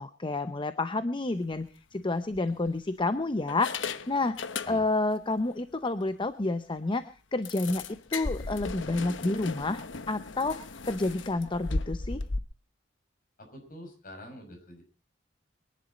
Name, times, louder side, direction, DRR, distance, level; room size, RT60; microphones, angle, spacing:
voice 1, 0.0-4.4 4.7-7.0 7.3-12.2, left 2 dB, 25° left, 11 dB, 0.7 m, -30 dB
sound 1, 1.4-1.6 2.3-3.0 3.5-5.1 5.4-5.6 6.0-6.1 6.4-6.5 7.4-12.4, left 3 dB, 70° left, 1.0 m, -36 dB
voice 2, 13.4-14.8, equal, 50° left, 4 dB, 6.2 m, -46 dB
23.5 x 11.0 x 4.2 m, 0.33 s
head